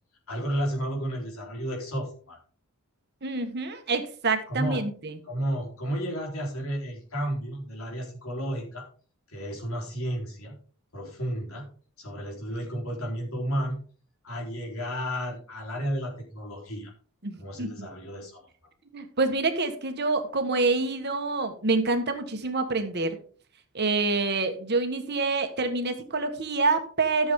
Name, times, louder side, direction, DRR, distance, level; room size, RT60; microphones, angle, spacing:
voice 1, 0.3-2.4 4.5-4.8 5.2-8.8 9.3-10.6 10.9-11.7 12.0-13.8 14.2-16.9 17.4-18.4, equal, 70° left, -1 dB, 4.1 m, -32 dB
voice 2, 3.2-5.2 17.2-17.9 18.9-23.2 23.7-27.3, right 3 dB, 50° right, 7 dB, 1.5 m, -27 dB
13.5 x 7.2 x 3.7 m, 0.42 s
head